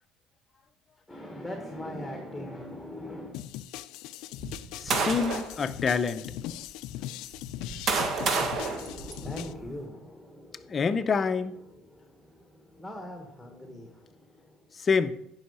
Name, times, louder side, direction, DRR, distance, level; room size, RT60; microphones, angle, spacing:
voice 1, 1.1-3.3 8.7-14.8, left 1 dB, ahead, 1.4 m, -42 dB
sound 1, 3.3-9.5, left 13 dB, 75° left, 0.5 m, -40 dB
sound 2, 4.4-5.6 6.3-6.4 7.3-9.7, right 4 dB, 45° right, 1.3 m, -30 dB
voice 2, 4.8-6.2 10.7-11.5 14.8-15.1, left 5 dB, 30° left, 0.6 m, -26 dB
10.0 x 5.6 x 5.6 m
cardioid pair, 120°, 0 cm